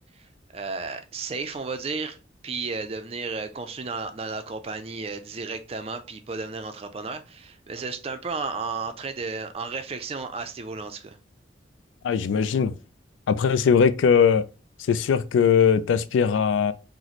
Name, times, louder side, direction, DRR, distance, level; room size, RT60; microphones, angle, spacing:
voice 1, 0.5-2.2 2.4-11.2, right 4 dB, 30° right, 0.4 m, -33 dB
voice 2, 12.0-12.7 13.3-14.5 14.9-16.7, left 6 dB, 90° left, 0.3 m, -20 dB
3.0 x 2.0 x 3.9 m
head